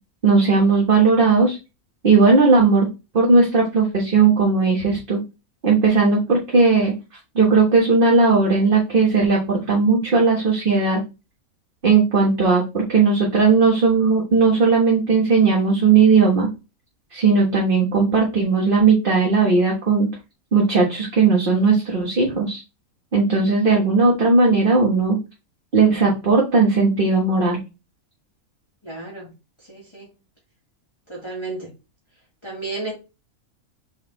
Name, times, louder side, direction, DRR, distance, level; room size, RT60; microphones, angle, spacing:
voice 1, 0.2-1.6 2.0-2.9 3.1-5.2 5.6-6.9 7.3-11.0 11.8-16.5 17.1-20.1 20.5-22.6 23.1-25.2 25.7-27.6, right 4 dB, 40° right, 1.6 m, -17 dB
voice 2, 28.8-29.3 29.7-30.1 31.1-31.7 32.4-32.9, right 3 dB, 20° left, 2.2 m, -32 dB
6.0 x 4.0 x 4.0 m
omnidirectional pair, 1.5 m